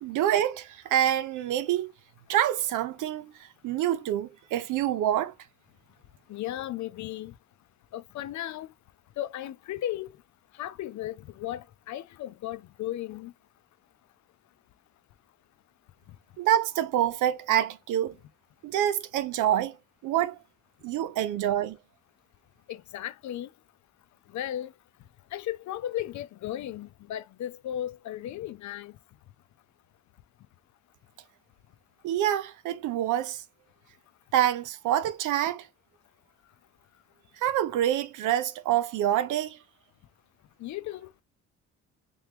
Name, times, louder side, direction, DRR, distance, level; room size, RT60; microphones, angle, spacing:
voice 1, 0.0-1.9 2.3-3.3 3.6-5.3 16.4-18.2 18.6-19.8 20.0-20.4 20.8-21.8 32.0-33.4 34.3-35.7 37.4-39.6, right 11 dB, 85° right, 0.6 m, -26 dB
voice 2, 6.3-7.4 7.9-8.7 9.2-10.1 10.5-13.3 22.7-23.5 24.3-24.7 25.3-29.0 40.6-41.1, left 12 dB, 70° left, 0.6 m, -35 dB
3.5 x 3.0 x 3.3 m
cardioid pair, 90°, 30 cm